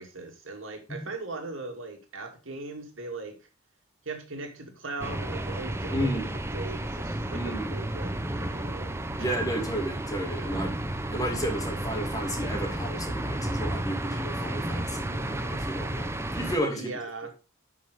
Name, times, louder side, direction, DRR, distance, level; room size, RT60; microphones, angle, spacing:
voice 1, 0.0-3.4 4.1-8.9 9.2-9.3 16.7-17.3, right 3 dB, 70° right, 4 dB, 2.5 m, -39 dB
sound 1, 5.0-16.6, right 1 dB, 15° right, 0.7 m, -32 dB
voice 2, 5.9-6.3 7.3-7.8 9.2-10.7 11.1-16.9, equal, 20° left, 2 dB, 2.5 m, -32 dB
11.5 x 5.4 x 5.1 m, 0.31 s
head